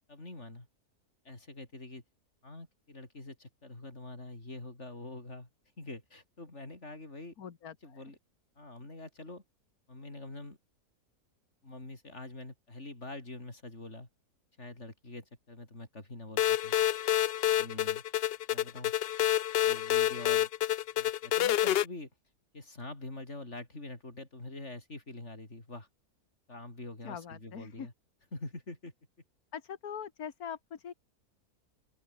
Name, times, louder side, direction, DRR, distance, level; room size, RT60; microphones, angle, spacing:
voice 1, 0.1-0.7 1.3-2.0 2.4-5.5 5.8-7.3 7.8-8.2 8.6-9.4 9.9-10.6 11.6-14.1 14.6-16.8 17.6-18.0 18.5-18.9 19.7-20.5 21.0-22.1 22.5-25.9 26.5-27.9 28.3-28.9, left 2 dB, 45° left, 5.5 m, -45 dB
voice 2, 7.4-8.0 27.0-27.9 29.5-30.9, left 8 dB, 70° left, 2.0 m, -42 dB
sound 1, 16.4-21.8, left 12 dB, 90° left, 0.5 m, -28 dB
open air
omnidirectional pair, 1.7 m